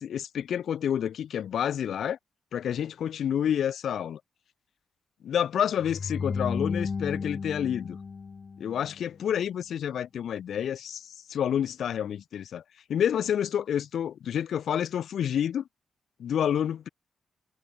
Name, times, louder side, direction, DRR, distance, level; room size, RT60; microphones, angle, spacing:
voice 1, 0.0-2.2 2.5-4.2 5.2-8.0 8.6-12.6 12.9-15.6 16.2-16.9, left 9 dB, 70° left, 4.9 m, -29 dB
sound 1, 5.8-9.0, left 5 dB, 35° left, 3.4 m, -33 dB
wide cardioid pair, 145°, 0 cm